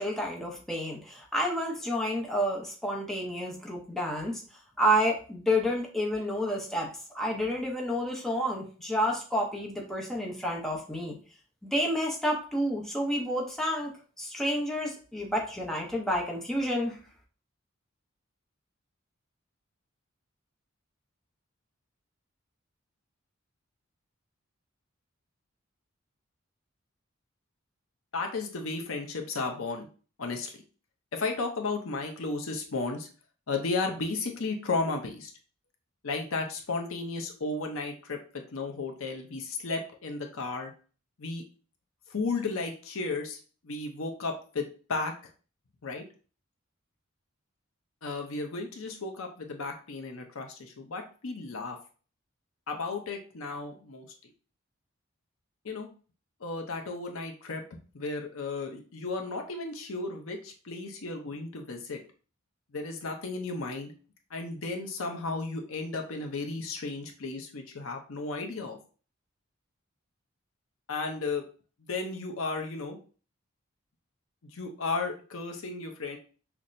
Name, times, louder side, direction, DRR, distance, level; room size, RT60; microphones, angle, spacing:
voice 1, 0.0-4.4 4.8-11.2 11.7-17.0, equal, ahead, -1 dB, 0.6 m, -30 dB
voice 2, 28.1-29.9 30.2-30.6 31.1-33.1 33.5-35.3 36.0-40.7 41.2-41.4 42.1-43.4 43.6-45.1 45.8-46.0 48.0-51.8 52.7-54.1 55.6-55.9 56.4-57.6 57.9-62.0 62.7-63.9 64.3-68.8 70.9-71.4 71.8-73.0 74.4-76.2, left 3 dB, 85° left, 3 dB, 0.7 m, -34 dB
5.8 x 2.1 x 2.6 m, 0.38 s
head